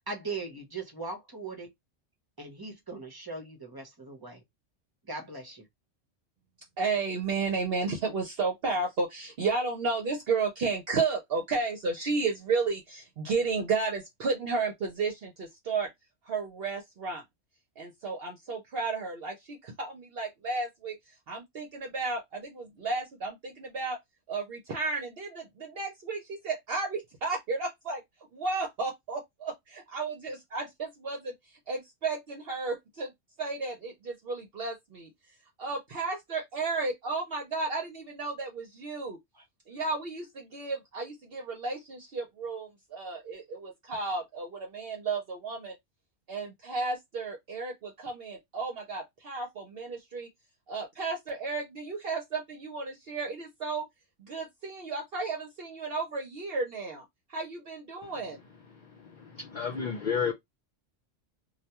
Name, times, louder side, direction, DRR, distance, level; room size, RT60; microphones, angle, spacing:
voice 1, 0.1-1.7 2.4-4.4 5.1-5.6 39.3-39.4, right 3 dB, 25° right, 0.6 m, -39 dB
voice 2, 6.8-15.9 16.2-17.2 17.8-21.0 21.3-24.0 24.3-28.0 28.3-33.1 33.4-35.1 35.6-39.2 39.7-45.8 46.3-50.3 50.7-53.8 54.2-57.0 57.3-58.4, right 4 dB, 60° right, 0.8 m, -33 dB
voice 3, 58.7-60.3, left 6 dB, 55° left, 0.6 m, -32 dB
2.3 x 2.2 x 2.8 m
omnidirectional pair, 1.3 m